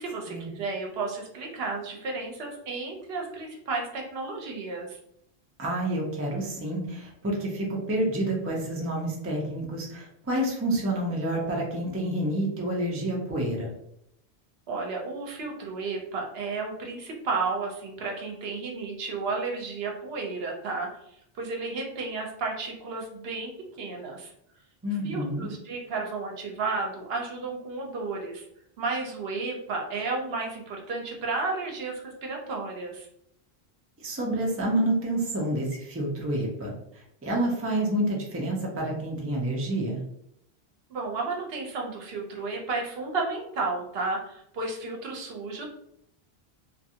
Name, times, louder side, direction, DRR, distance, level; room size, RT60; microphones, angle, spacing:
voice 1, 0.0-5.0 14.7-23.5 23.8-24.3 25.0-28.4 28.8-33.1 40.9-45.7, right 3 dB, 75° right, 0 dB, 0.8 m, -32 dB
voice 2, 5.6-13.7 24.8-25.5 34.0-40.0, right 1 dB, 20° right, -2 dB, 0.4 m, -28 dB
2.5 x 2.3 x 2.7 m, 0.76 s
omnidirectional pair, 1.1 m